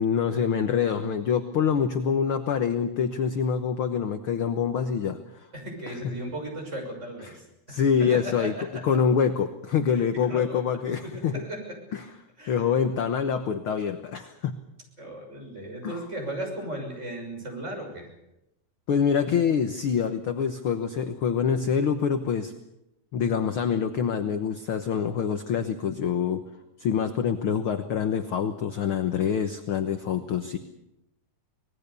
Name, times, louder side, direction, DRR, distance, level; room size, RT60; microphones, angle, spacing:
voice 1, 0.0-5.5 5.9-6.0 7.7-8.5 8.8-11.4 11.9-12.0 12.5-14.6 15.8-16.0 18.9-22.5 23.1-26.4 26.8-30.6, left 7 dB, 65° left, 8 dB, 1.3 m, -25 dB
voice 2, 5.5-8.6 9.9-10.6 11.0-11.8 12.4-12.7 15.0-18.1, right 1 dB, 20° right, 2 dB, 6.5 m, -36 dB
25.5 x 19.5 x 6.9 m, 0.89 s
omnidirectional pair, 3.7 m